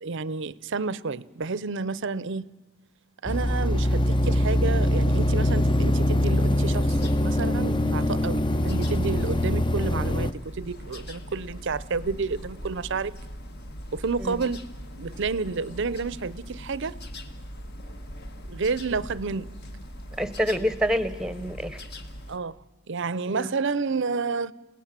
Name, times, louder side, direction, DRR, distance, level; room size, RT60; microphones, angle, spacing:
voice 1, 0.0-2.5 3.2-13.2 13.9-14.6 15.0-16.9 18.5-19.5 22.3-22.6 22.9-24.5, right 4 dB, 60° right, 20 dB, 0.6 m, -30 dB
sound 1, 3.3-10.3, left 1 dB, 25° left, 0.6 m, -23 dB
sound 2, 6.7-22.4, equal, 50° left, 1.6 m, -41 dB
voice 2, 20.2-21.8 23.3-23.5, equal, 5° right, 14 dB, 1.0 m, -27 dB
30.0 x 17.0 x 7.5 m, 1.3 s
head